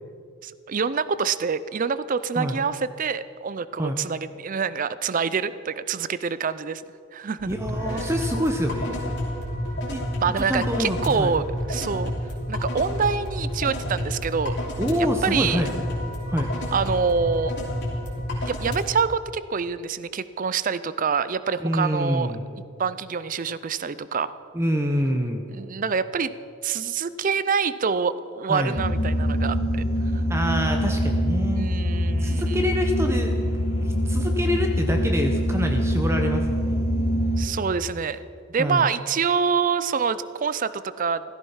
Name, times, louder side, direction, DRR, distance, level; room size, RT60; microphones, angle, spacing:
voice 1, 0.4-6.8 7.1-7.5 7.9-8.0 10.2-12.1 12.5-14.6 15.2-15.6 16.7-17.5 18.5-22.3 22.8-24.3 25.5-26.3 26.6-29.8 30.1-30.2 31.5-32.7 37.4-38.2 38.5-41.2, right 5 dB, 40° right, 15 dB, 0.4 m, -26 dB
sound 1, 7.4-18.8, left 1 dB, 50° left, 3.1 m, -30 dB
voice 2, 7.5-9.0 9.9-10.0 10.4-11.4 14.8-15.7 16.3-16.5 21.6-22.4 24.5-25.4 28.5-28.8 30.3-31.7 32.2-33.5 34.1-36.8 38.6-38.9, equal, 10° right, 4 dB, 0.8 m, -26 dB
sound 2, 28.7-37.5, equal, 85° left, 3.0 m, -24 dB
16.0 x 13.5 x 5.6 m, 2.4 s
head